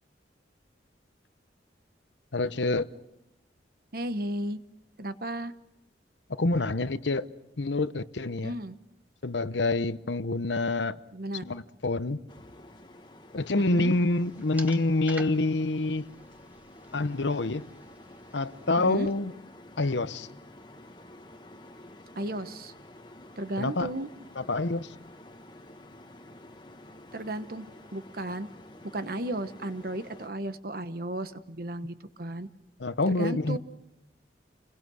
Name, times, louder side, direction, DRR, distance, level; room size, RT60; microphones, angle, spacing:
voice 1, 2.3-2.9 6.3-7.3 7.6-8.5 9.2-11.0 11.4-12.2 13.3-16.0 16.9-17.7 18.3-19.3 19.8-20.3 23.6-23.9 24.4-24.9 32.8-33.6, left 2 dB, 80° left, 0.9 m, -27 dB
voice 2, 3.9-4.6 5.0-5.5 8.4-8.8 11.1-11.4 13.7-13.9 18.8-19.1 22.2-22.7 23.4-24.1 27.1-28.5 28.9-32.5 33.1-33.6, right 1 dB, 55° right, 1.2 m, -34 dB
sound 1, 12.3-30.3, left 1 dB, 25° left, 1.3 m, -50 dB
sound 2, 13.4-19.2, right 1 dB, 10° right, 1.1 m, -49 dB
29.5 x 21.5 x 6.4 m
head